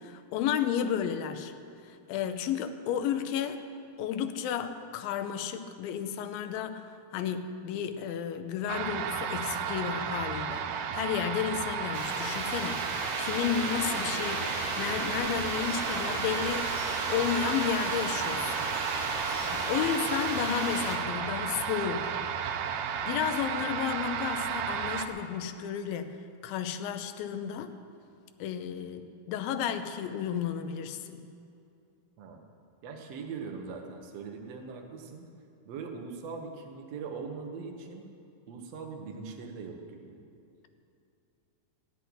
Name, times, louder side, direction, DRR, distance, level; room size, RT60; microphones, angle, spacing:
voice 1, 0.0-1.5 1.8-3.7 4.0-6.9 7.1-12.9 13.2-16.8 17.1-22.2 23.0-27.7 28.4-31.3, left 8 dB, 80° left, 9 dB, 2.3 m, -32 dB
sound 1, 8.7-25.1, right 7 dB, 80° right, 2.1 m, -33 dB
sound 2, 11.9-21.0, right 1 dB, 40° right, 2.1 m, -35 dB
voice 2, 32.8-35.3 35.6-38.1 38.5-40.2, right 5 dB, 60° right, 3 dB, 1.8 m, -41 dB
16.0 x 6.2 x 9.9 m, 2.6 s
omnidirectional pair, 4.4 m